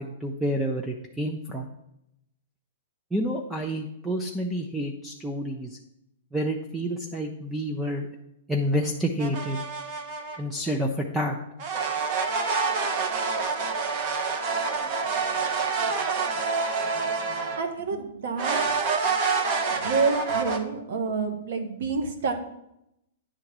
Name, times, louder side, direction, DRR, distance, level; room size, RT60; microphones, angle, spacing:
voice 1, 0.0-1.7 3.1-5.8 6.3-8.1 8.5-9.6 10.4-11.4, equal, 5° right, 2 dB, 0.5 m, -29 dB
sound 1, 9.2-10.4 11.6-17.7 18.4-20.6, right 4 dB, 40° right, 0.9 m, -27 dB
voice 2, 17.6-18.6 19.7-22.3, right 4 dB, 65° right, 6 dB, 1.3 m, -28 dB
9.8 x 3.8 x 6.0 m, 0.81 s
hypercardioid pair, 155°, 0 cm